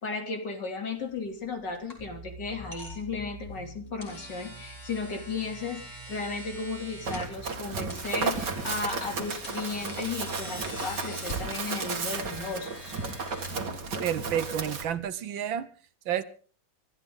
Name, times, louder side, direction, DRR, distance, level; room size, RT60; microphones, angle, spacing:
voice 1, 0.0-12.9, left 4 dB, 60° left, 3 dB, 3.6 m, -35 dB
sound 1, 1.0-14.2, equal, 35° left, 4.5 m, -45 dB
sound 2, 2.0-15.1, equal, 15° left, 6.1 m, -47 dB
Run, 7.0-14.9, right 4 dB, 60° right, 2.5 m, -34 dB
voice 2, 14.0-15.7 16.1-16.2, right 9 dB, 80° right, 13 dB, 1.8 m, -30 dB
24.5 x 13.5 x 3.8 m, 0.42 s
omnidirectional pair, 2.1 m